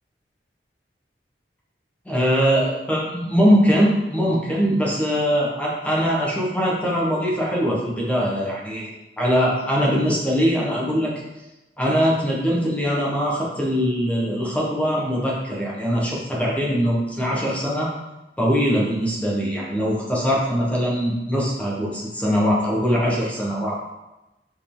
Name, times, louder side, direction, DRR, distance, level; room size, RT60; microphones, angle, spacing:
voice 1, 2.0-11.1 11.8-17.9 18.4-23.9, equal, 5° left, -4 dB, 1.3 m, -22 dB
7.0 x 4.7 x 3.8 m, 1.0 s
head